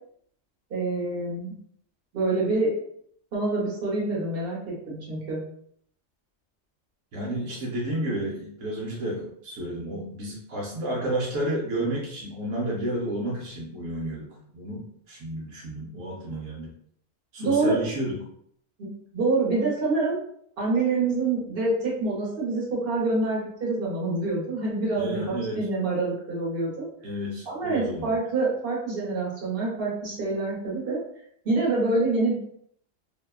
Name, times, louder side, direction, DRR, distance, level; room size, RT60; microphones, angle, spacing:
voice 1, 0.7-1.5 2.1-2.7 3.3-5.4 17.4-17.8 18.8-20.2 20.6-26.9 27.5-31.0 31.4-32.4, right 3 dB, 50° right, -4 dB, 1.1 m, -26 dB
voice 2, 7.1-16.7 17.3-18.3 24.9-25.7 27.0-28.1, right 1 dB, 80° right, -4 dB, 1.0 m, -31 dB
2.7 x 2.2 x 2.3 m, 0.67 s
omnidirectional pair, 1.3 m